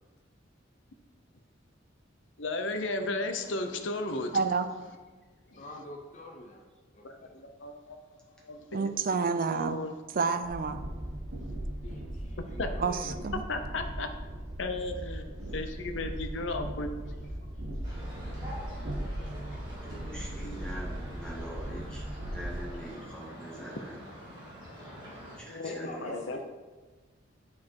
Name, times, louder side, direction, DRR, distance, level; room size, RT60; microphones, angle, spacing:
voice 1, 2.4-4.4 5.5-5.7 7.0-8.0 8.4-8.9 9.5-9.9 12.6-12.7 13.5-14.1 14.6-17.0 25.5-26.4, left 2 dB, 75° left, 6 dB, 0.7 m, -35 dB
voice 2, 4.3-4.7 8.7-9.8 10.1-10.8 12.8-13.4, right 4 dB, 50° right, 10 dB, 0.5 m, -29 dB
voice 3, 5.6-6.6 6.9-7.4 11.8-13.3 25.6-26.4, left 1 dB, 40° left, 1 dB, 0.7 m, -45 dB
Train, 10.4-22.7, right 1 dB, 85° right, 1.1 m, -38 dB
sound 1, 17.8-25.4, equal, 25° right, 2.2 m, -45 dB
voice 4, 19.8-22.0 22.3-24.0 24.8-26.2, right 1 dB, 5° left, -5 dB, 1.8 m, -44 dB
8.4 x 4.3 x 4.7 m, 1.3 s
head